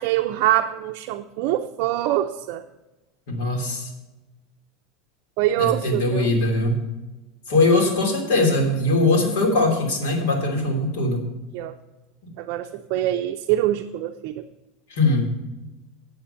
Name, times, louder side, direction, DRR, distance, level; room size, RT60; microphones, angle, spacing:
voice 1, 0.0-2.6 5.4-6.4 11.5-11.8 12.4-14.4, right 13 dB, 55° right, 5 dB, 0.5 m, -24 dB
voice 2, 3.3-3.9 5.6-6.8 7.5-11.2 14.9-15.3, left 2 dB, 70° left, 1 dB, 2.9 m, -21 dB
8.4 x 7.7 x 5.6 m, 1.1 s
supercardioid pair, 160°, 0 cm